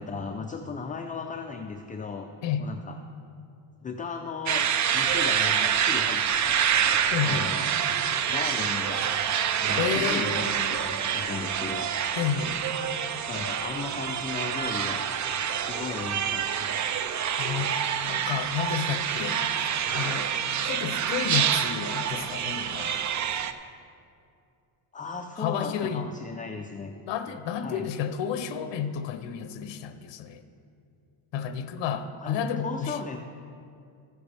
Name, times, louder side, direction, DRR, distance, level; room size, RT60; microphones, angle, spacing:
voice 1, 0.0-2.3 2.6-3.0 3.8-4.7 4.9-6.7 7.2-7.7 8.3-9.2 9.6-11.9 13.3-15.1 15.6-16.9 24.9-26.9 27.6-27.8 32.2-33.2, left 5 dB, 20° left, 3 dB, 0.4 m, -36 dB
sound 1, 4.5-23.5, right 8 dB, 40° right, 0.5 m, -27 dB
voice 2, 7.1-7.5 9.8-10.6 12.2-12.6 17.4-17.7 18.1-20.3 20.6-23.0 25.4-26.0 27.1-30.4 31.3-33.0, left 7 dB, 60° left, 10 dB, 0.8 m, -31 dB
15.0 x 9.4 x 3.4 m, 2.4 s
cardioid pair, 120°, 49 cm